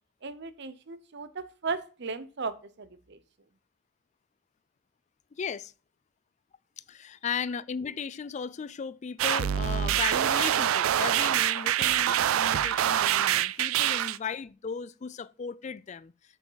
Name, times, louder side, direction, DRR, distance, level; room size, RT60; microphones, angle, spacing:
voice 1, 0.2-3.2 13.7-14.0, right 4 dB, 55° right, 0.7 m, -37 dB
voice 2, 5.4-5.7 6.9-16.1, left 6 dB, 35° left, 0.3 m, -36 dB
sound 1, 9.2-14.2, right 11 dB, 85° right, 0.4 m, -25 dB
7.3 x 7.1 x 3.9 m
head